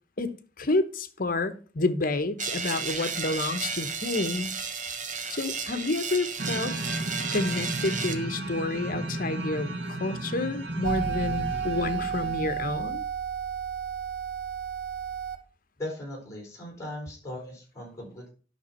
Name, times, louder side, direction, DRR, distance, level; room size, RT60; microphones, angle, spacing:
voice 1, 0.2-4.5 5.3-6.7 7.3-13.0, left 2 dB, 55° left, 1.0 m, -29 dB
sound 1, 2.4-8.2, right 5 dB, 45° right, 1.4 m, -33 dB
sound 2, 6.4-12.7, right 2 dB, 70° right, 1.7 m, -34 dB
sound 3, 10.8-15.4, right 7 dB, 90° right, 1.2 m, -32 dB
voice 2, 15.8-18.3, left 1 dB, 20° left, 4.6 m, -38 dB
10.5 x 6.1 x 4.4 m
head